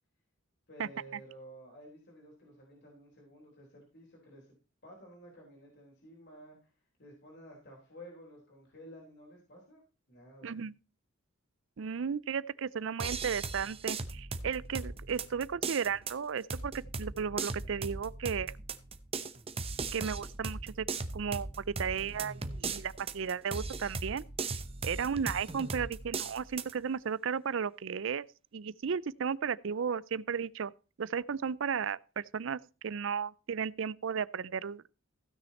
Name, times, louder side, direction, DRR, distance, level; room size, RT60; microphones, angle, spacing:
voice 1, 0.7-4.5 4.8-6.7 7.0-9.8 10.1-10.6, equal, 55° left, 3.9 m, -53 dB
voice 2, 11.8-18.5 19.9-20.9 21.1-24.2 24.8-28.2 28.5-30.7 31.0-34.9, right 6 dB, 60° right, 0.5 m, -34 dB
sound 1, 13.0-26.7, right 4 dB, 25° right, 0.8 m, -38 dB
15.5 x 6.5 x 4.2 m
head